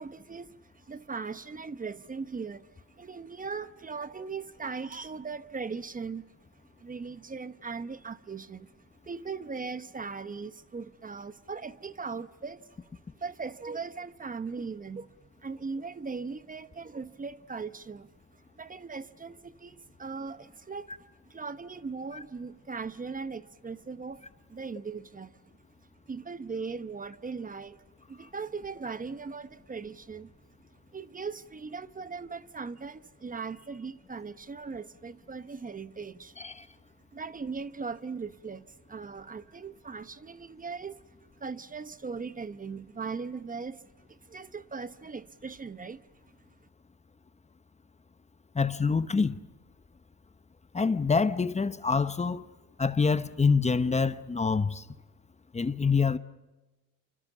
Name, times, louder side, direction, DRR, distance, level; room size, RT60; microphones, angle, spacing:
voice 1, 0.0-6.3 6.5-12.8 13.2-15.1 15.4-21.0 21.2-24.2 24.5-25.4 26.1-30.3 30.7-36.4 37.1-46.3, right 5 dB, 25° right, 0.9 m, -39 dB
voice 2, 48.5-49.4 50.7-52.4 52.8-54.8 55.5-56.2, left 5 dB, 20° left, 0.9 m, -26 dB
28.0 x 25.5 x 7.3 m
cardioid pair, 90°, 30 cm